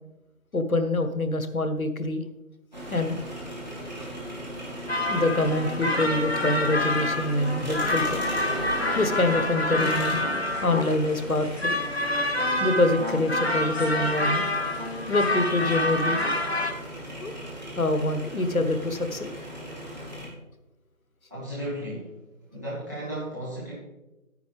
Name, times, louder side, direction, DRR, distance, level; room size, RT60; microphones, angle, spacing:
voice 1, 0.5-2.2 2.9-3.2 4.0-4.1 5.1-8.2 8.9-10.2 10.6-11.7 12.6-14.5 15.1-16.2 17.2-17.3 17.8-19.3, left 2 dB, 85° left, 9 dB, 1.2 m, -25 dB
sound 1, 2.7-20.3, right 1 dB, 30° right, 2.4 m, -38 dB
sound 2, 4.9-16.7, left 1 dB, 50° left, 0.9 m, -27 dB
voice 2, 21.3-22.1 22.5-23.7, right 1 dB, 15° right, -10 dB, 2.4 m, -34 dB
10.5 x 10.0 x 3.4 m, 1.0 s
figure-of-eight pair, 175°, 41 cm